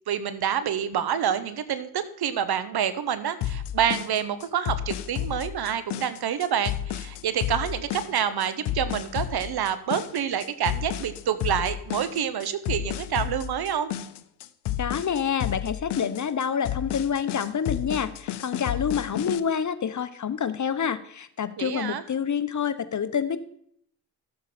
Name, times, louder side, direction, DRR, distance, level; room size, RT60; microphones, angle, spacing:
voice 1, 0.1-13.9 21.6-22.0, right 9 dB, 65° right, 13 dB, 0.9 m, -27 dB
sound 1, 3.4-19.4, left 11 dB, 70° left, 0.6 m, -32 dB
voice 2, 14.8-23.4, left 7 dB, 45° left, 13 dB, 0.9 m, -27 dB
13.0 x 7.3 x 4.2 m, 0.68 s
hypercardioid pair, 40°, 42 cm